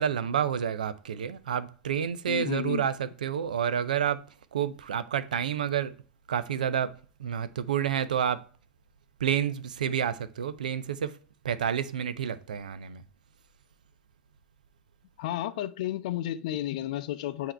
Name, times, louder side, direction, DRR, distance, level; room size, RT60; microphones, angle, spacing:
voice 1, 0.0-4.2 4.5-5.9 6.3-6.9 7.2-8.4 9.2-11.1 11.4-13.0, right 8 dB, 85° right, 0.5 m, -29 dB
voice 2, 2.3-2.9 15.2-17.5, left 13 dB, 65° left, 0.5 m, -32 dB
7.7 x 2.8 x 4.4 m
hypercardioid pair, 90°, 4 cm